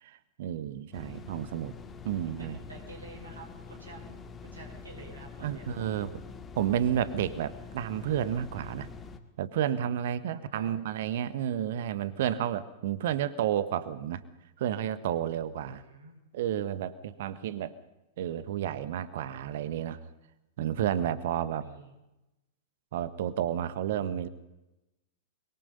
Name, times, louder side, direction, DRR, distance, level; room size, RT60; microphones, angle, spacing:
voice 1, 0.0-1.7 2.0-2.6 5.4-6.2 6.5-8.9 9.4-14.2 14.6-15.8 16.3-17.7 18.2-20.0 20.6-21.6 22.9-24.3, right 10 dB, 55° right, 14 dB, 1.3 m, -31 dB
sound 1, 0.9-9.2, left 5 dB, 20° left, 1.9 m, -45 dB
voice 2, 2.4-5.7 10.3-10.8 15.7-16.2 21.6-21.9, right 3 dB, 75° right, 1 dB, 5.1 m, -49 dB
24.0 x 22.5 x 5.5 m, 0.94 s
figure-of-eight pair, 100°, 0 cm